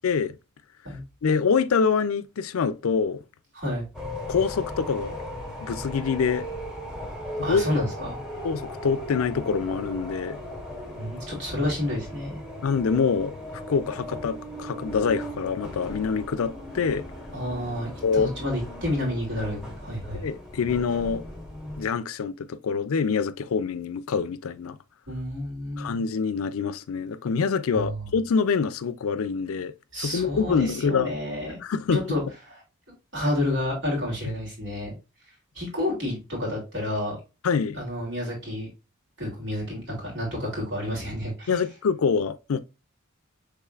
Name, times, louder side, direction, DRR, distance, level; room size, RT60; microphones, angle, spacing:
voice 1, 0.0-0.3 1.2-3.2 4.3-5.2 5.6-6.5 7.5-7.8 8.4-10.4 12.6-17.0 18.0-18.3 20.1-21.2 21.8-24.8 25.8-31.1 31.6-32.0 37.4-37.8 41.5-42.6, left 5 dB, 85° left, 0.4 m, -25 dB
voice 2, 3.5-3.9 7.4-8.2 11.0-12.4 17.3-20.2 25.1-25.9 27.7-28.1 29.9-31.6 31.9-32.2 32.5-32.6 33.1-34.9 35.5-37.2 37.7-38.7 39.2-41.6, left 1 dB, 60° right, 2.7 m, -30 dB
sound 1, 3.9-21.9, left 1 dB, ahead, 1.3 m, -37 dB
5.6 x 3.6 x 2.4 m
head